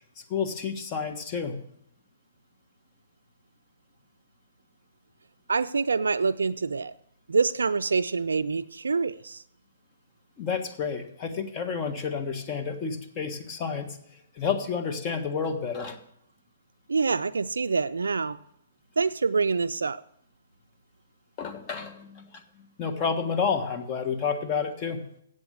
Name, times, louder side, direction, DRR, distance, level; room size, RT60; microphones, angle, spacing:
voice 1, 0.3-1.6 10.4-14.0 14.3-16.0 21.4-22.4 22.8-25.0, left 6 dB, 30° left, 7 dB, 1.4 m, -30 dB
voice 2, 5.5-6.9 7.3-9.4 16.9-18.4 19.0-20.0, right 4 dB, 90° right, 9 dB, 0.3 m, -26 dB
7.9 x 7.9 x 7.5 m, 0.72 s
hypercardioid pair, 135°, 0 cm